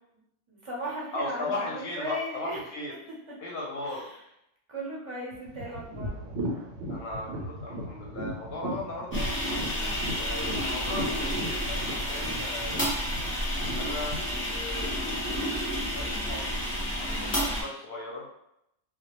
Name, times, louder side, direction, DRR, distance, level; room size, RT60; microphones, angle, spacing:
voice 1, 0.5-2.6 3.8-4.2 4.7-6.3 9.7-10.1 17.0-17.4, equal, 35° right, -5 dB, 0.6 m, -37 dB
voice 2, 1.1-2.9 3.4-4.1 6.9-9.3 10.2-12.9 13.8-15.6 15.9-16.6 17.0-18.3, left 2 dB, 65° left, -3 dB, 0.7 m, -37 dB
sound 1, 5.3-14.2, equal, 85° right, 0.9 m, -37 dB
sound 2, 9.1-17.6, equal, 20° left, 0.4 m, -30 dB
2.1 x 2.1 x 2.8 m, 0.79 s
omnidirectional pair, 1.2 m